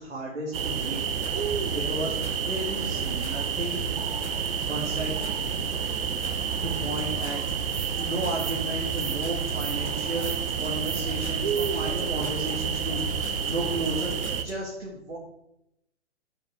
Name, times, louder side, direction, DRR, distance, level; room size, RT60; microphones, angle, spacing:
voice 1, 0.0-1.4 1.7-3.8 4.7-5.1 6.6-7.4 8.0-14.2 14.4-15.2, right 2 dB, 80° right, -3 dB, 2.6 m, -33 dB
sound 1, 0.5-14.4, right 7 dB, 55° right, 1.1 m, -29 dB
sound 2, 1.0-14.5, left 3 dB, 75° left, 1.8 m, -42 dB
10.5 x 6.1 x 4.9 m, 0.81 s
figure-of-eight pair, 130°, 35 cm